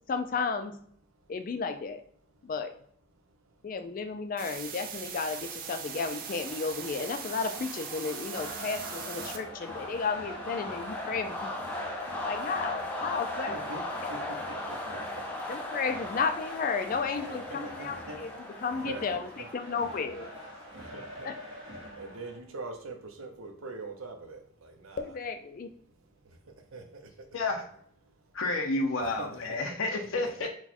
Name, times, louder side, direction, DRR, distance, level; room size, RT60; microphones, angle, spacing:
voice 1, 0.1-0.7 1.3-2.0 2.4-2.7 3.6-11.5 12.2-13.6 15.5-20.3 21.2-21.3 25.0-25.8, left 5 dB, 40° left, 7 dB, 0.3 m, -33 dB
sound 1, 4.4-9.4, right 7 dB, 45° right, 0.4 m, -40 dB
sound 2, 5.4-21.9, left 2 dB, 10° left, 0.6 m, -39 dB
sound 3, 8.3-22.4, equal, 70° right, 1.3 m, -45 dB
voice 2, 13.5-13.8 14.1-14.8 17.3-18.2 18.8-19.0 20.8-21.3 22.0-25.0 26.7-27.0 29.2-29.3 30.2-30.5, right 3 dB, 90° right, 5 dB, 0.8 m, -42 dB
voice 3, 27.3-27.7 28.3-30.5, left 2 dB, 80° left, 3 dB, 0.6 m, -30 dB
4.6 x 2.2 x 4.2 m, 0.63 s
head